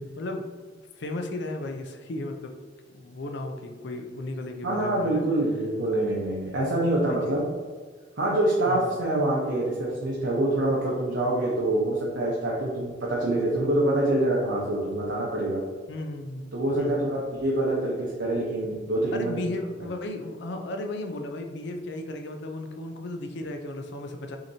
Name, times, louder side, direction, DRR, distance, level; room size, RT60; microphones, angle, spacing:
voice 1, 0.2-0.5 1.0-2.5 2.9-5.2 7.0-7.4 8.7-8.9 15.9-16.5 16.8-17.4 19.1-24.4, left 2 dB, 65° left, 5 dB, 0.5 m, -35 dB
voice 2, 4.6-7.4 8.2-15.6 16.5-19.4, right 1 dB, 75° right, -5 dB, 0.9 m, -25 dB
6.3 x 2.9 x 2.7 m, 1.5 s
head